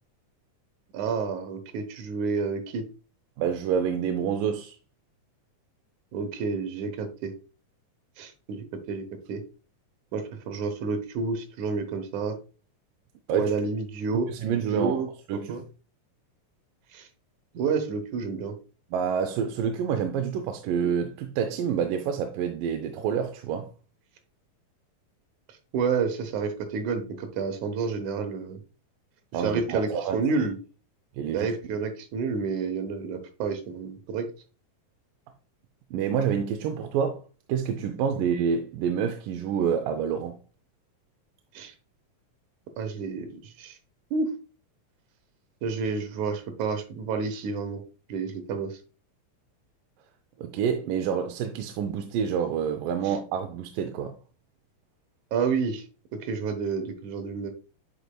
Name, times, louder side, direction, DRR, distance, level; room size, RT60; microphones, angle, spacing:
voice 1, 0.9-2.9 6.1-7.4 8.2-9.4 10.1-12.4 13.3-15.6 16.9-17.1 17.5-18.6 20.7-20.8 25.5-28.6 29.3-30.6 31.3-34.3 41.5-41.7 42.8-43.8 44.1-44.3 45.6-47.8 48.1-48.8 53.0-53.1 55.3-55.8 56.1-57.5, right 5 dB, 70° right, 2.3 m, -30 dB
voice 2, 3.4-4.8 13.3-13.5 14.3-15.0 15.3-15.6 18.9-23.7 29.3-30.2 31.2-31.5 35.9-37.2 37.5-40.4 50.4-54.2, right 7 dB, 85° right, 2.3 m, -28 dB
10.0 x 4.6 x 2.2 m
omnidirectional pair, 3.8 m